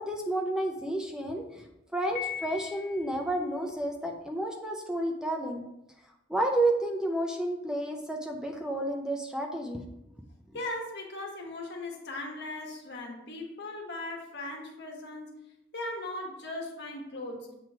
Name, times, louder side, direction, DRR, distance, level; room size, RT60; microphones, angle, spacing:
voice 1, 0.0-1.6 1.9-5.7 6.3-9.9, right 1 dB, 5° right, 2 dB, 0.5 m, -31 dB
Piano, 2.2-3.3, left 9 dB, 40° left, 1.5 m, -38 dB
voice 2, 10.5-15.3 15.7-17.5, left 2 dB, 60° left, 0 dB, 1.3 m, -38 dB
7.3 x 3.1 x 4.7 m, 0.86 s
head